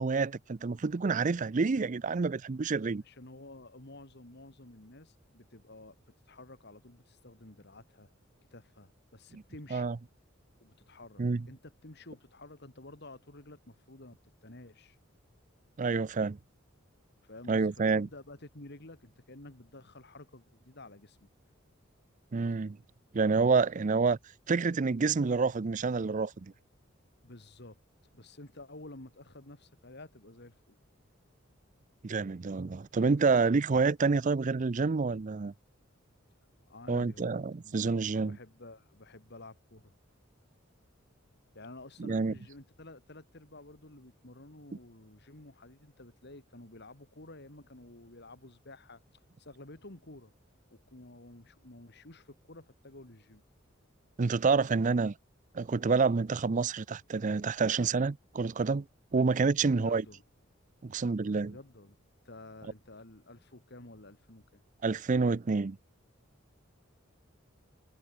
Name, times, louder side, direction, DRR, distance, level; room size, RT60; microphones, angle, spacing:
voice 1, 0.0-3.0 9.3-9.4 9.7-10.0 11.2-11.4 15.8-16.4 17.5-18.1 22.3-22.8 23.1-24.2 24.5-26.5 32.0-35.5 36.9-38.4 42.0-42.3 54.2-55.1 55.5-58.8 59.1-60.0 60.8-61.5 64.8-65.8, right 4 dB, 40° right, 0.5 m, -28 dB
voice 2, 3.0-6.0 6.3-8.1 8.5-9.9 10.6-15.0 17.2-21.3 27.2-27.8 28.1-30.8 36.7-37.8 38.2-40.0 41.5-49.0 49.4-50.3 50.7-53.4 59.1-59.3 59.7-60.2 61.4-62.0 62.2-64.6, left 2 dB, 55° left, 2.8 m, -51 dB
head